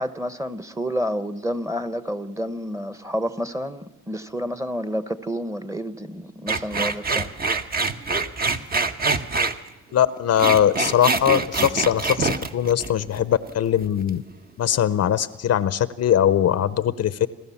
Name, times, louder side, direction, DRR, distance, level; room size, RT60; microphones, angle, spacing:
voice 1, 0.0-7.3, equal, 10° right, 13 dB, 1.1 m, -29 dB
sound 1, 6.5-9.6 10.2-13.5 13.8-14.2, right 3 dB, 30° right, 1.1 m, -25 dB
voice 2, 9.9-14.2 14.6-17.3, left 10 dB, 55° left, 16 dB, 0.7 m, -21 dB
29.0 x 13.0 x 7.2 m, 1.2 s
cardioid pair, 90°, 30 cm